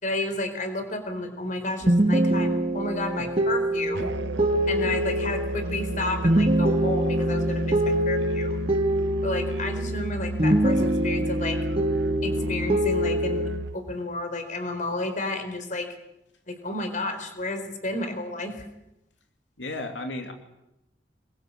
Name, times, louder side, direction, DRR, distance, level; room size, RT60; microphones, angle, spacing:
voice 1, 0.0-4.1 4.7-8.6 9.2-11.6 12.2-16.0 16.5-18.7, left 2 dB, 45° left, 8 dB, 4.3 m, -31 dB
sound 1, 1.8-10.1 10.4-13.5, right 1 dB, 30° right, 2.1 m, -24 dB
Musical instrument, 3.9-13.8, right 1 dB, 80° right, 1.0 m, -32 dB
voice 2, 19.6-20.3, left 2 dB, 85° left, 4 dB, 2.7 m, -35 dB
26.0 x 22.0 x 8.6 m, 0.88 s
head